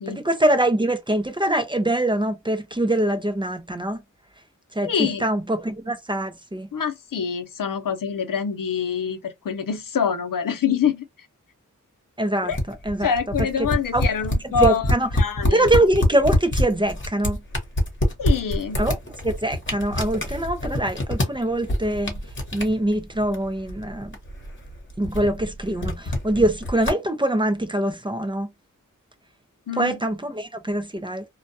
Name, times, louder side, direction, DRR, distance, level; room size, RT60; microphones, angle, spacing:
voice 1, 0.1-4.0 4.8-6.7 12.2-12.5 12.9-13.1 13.9-14.0 14.6-15.1 15.5-17.4 18.8-19.0 19.2-22.2 22.5-24.1 25.0-28.5 29.8-31.2, right 1 dB, 15° right, 0.5 m, -23 dB
voice 2, 4.8-5.2 6.7-11.1 12.4-12.6 13.0-15.7 18.2-18.8 29.7-30.0, left 7 dB, 90° left, 0.6 m, -25 dB
sound 1, 12.5-26.9, left 1 dB, 35° left, 1.0 m, -26 dB
2.3 x 2.2 x 2.6 m
wide cardioid pair, 75°, 32 cm